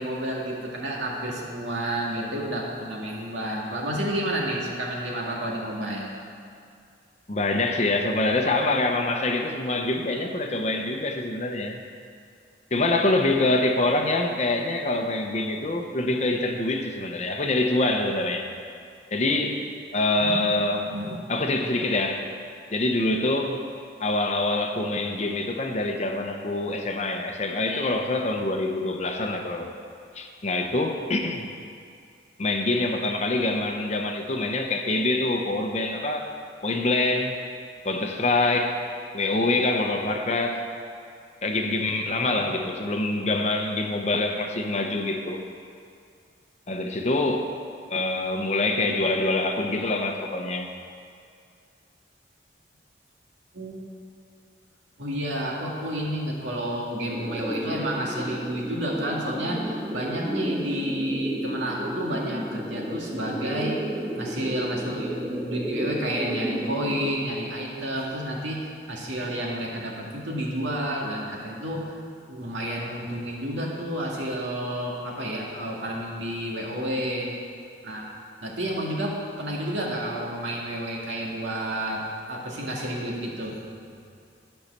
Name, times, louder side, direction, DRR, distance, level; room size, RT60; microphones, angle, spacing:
voice 1, 0.0-6.1 20.2-20.4 20.7-21.2 42.3-42.4 53.5-53.8 55.0-63.8 64.2-68.6 68.9-71.9 72.3-77.3 77.8-78.1 78.4-82.0 82.3-83.6, right 1 dB, 80° right, -3 dB, 2.0 m, -30 dB
voice 2, 7.3-11.8 12.7-18.5 19.1-19.6 19.9-20.9 21.3-22.2 22.7-23.6 24.0-29.7 30.1-31.5 32.4-36.3 36.6-37.4 37.8-38.8 39.1-40.6 41.4-45.4 46.7-47.5 47.9-50.7, left 2 dB, 35° left, 4 dB, 0.7 m, -25 dB
sound 1, 57.1-67.1, equal, 5° right, 0.6 m, -32 dB
12.0 x 5.6 x 6.7 m, 2.4 s
head